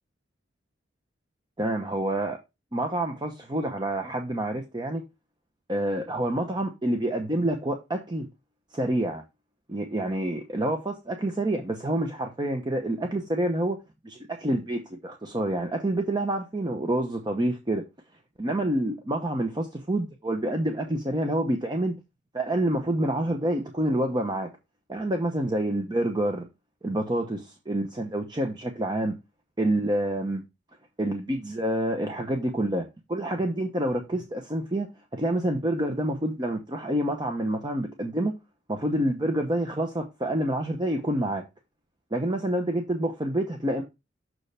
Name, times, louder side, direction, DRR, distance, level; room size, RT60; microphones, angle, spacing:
voice 1, 1.6-2.4 2.7-5.0 5.7-8.3 8.7-9.2 9.7-13.8 14.0-17.8 18.4-22.0 22.3-24.5 24.9-26.4 26.8-29.1 29.6-30.4 31.0-34.9 35.1-38.3 38.7-41.4 42.1-43.8, right 1 dB, 25° right, 0.8 m, -27 dB
6.7 x 6.2 x 3.3 m
head